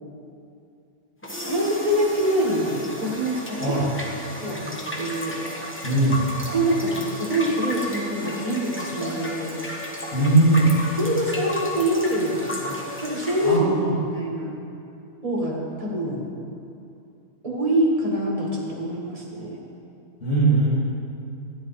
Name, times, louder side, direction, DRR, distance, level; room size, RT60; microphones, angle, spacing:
sound 1, 1.2-13.6, left 1 dB, 10° left, 1.0 m, -33 dB
voice 1, 1.4-3.8 4.0-5.4 6.5-9.5 11.0-13.7 14.0-14.5 15.2-16.3 17.4-19.6, right 1 dB, 25° right, -3 dB, 1.8 m, -25 dB
voice 2, 5.8-6.3 10.1-10.7 13.4-13.9 20.2-20.7, right 2 dB, 60° left, -9 dB, 3.1 m, -19 dB
13.5 x 9.9 x 4.2 m, 2.6 s
omnidirectional pair, 1.6 m